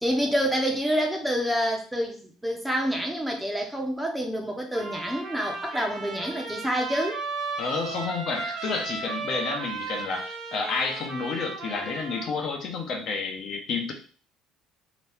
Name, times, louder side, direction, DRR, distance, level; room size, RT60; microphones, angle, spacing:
voice 1, 0.0-7.2, equal, 5° right, 1 dB, 0.7 m, -27 dB
Trumpet, 4.7-12.3, right 4 dB, 65° right, 1.2 m, -35 dB
voice 2, 7.6-13.9, left 4 dB, 55° left, 2 dB, 0.7 m, -30 dB
2.9 x 2.7 x 3.4 m, 0.40 s
cardioid pair, 125°, 0 cm